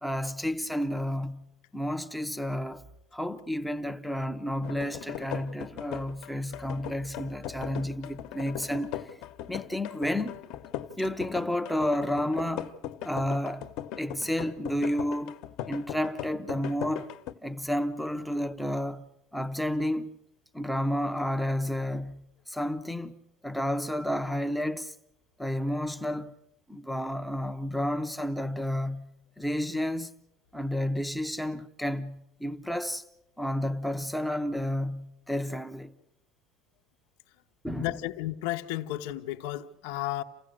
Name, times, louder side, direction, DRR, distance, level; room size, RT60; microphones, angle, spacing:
voice 1, 0.0-1.4 1.7-2.9 3.1-9.0 9.5-10.4 11.0-12.7 13.0-13.7 14.0-15.4 15.6-17.1 17.4-19.1 19.3-20.2 20.5-24.9 25.4-26.3 26.7-29.1 29.4-30.1 30.5-33.0 33.4-35.9 37.6-37.9, left 1 dB, ahead, 0.7 m, -31 dB
sound 1, 4.6-17.3, left 11 dB, 55° left, 1.1 m, -39 dB
voice 2, 37.8-40.2, left 14 dB, 75° left, 0.9 m, -33 dB
28.5 x 16.0 x 6.6 m
cardioid pair, 175°, 0 cm